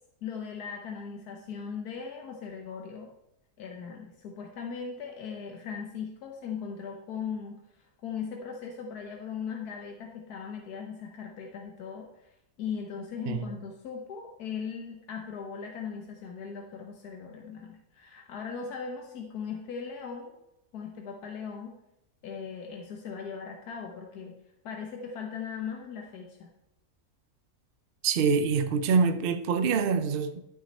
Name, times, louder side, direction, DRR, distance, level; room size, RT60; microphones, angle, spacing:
voice 1, 0.2-3.1 3.6-12.3 12.6-20.3 20.7-21.8 22.2-24.3 24.6-26.5, left 6 dB, 85° left, 1.5 m, -39 dB
voice 2, 28.0-30.4, right 5 dB, 60° right, 0.6 m, -25 dB
12.5 x 6.3 x 4.1 m
omnidirectional pair, 1.6 m